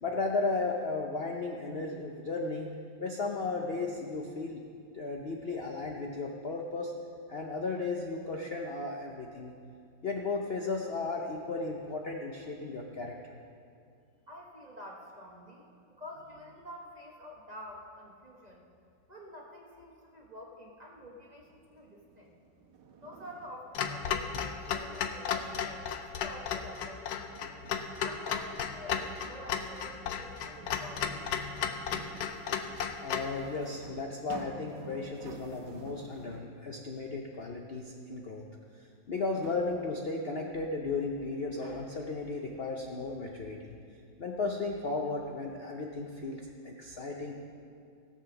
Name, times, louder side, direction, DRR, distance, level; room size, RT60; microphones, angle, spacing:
voice 1, 0.0-2.7 3.0-4.6 4.9-6.9 7.3-9.5 10.0-13.3 33.0-38.4 38.8-43.7 44.2-47.4, left 3 dB, 50° left, 0 dB, 0.8 m, -35 dB
voice 2, 14.3-18.6 19.1-22.3 23.0-27.4 28.0-31.3, left 1 dB, 25° right, -2 dB, 1.2 m, -48 dB
sound 1, 21.4-36.6 38.4-38.5 39.2-39.7, right 4 dB, 75° right, 1.6 m, -52 dB
Clock, 23.7-33.3, left 7 dB, 65° left, 1.1 m, -34 dB
16.5 x 7.4 x 5.9 m, 2.4 s
omnidirectional pair, 1.9 m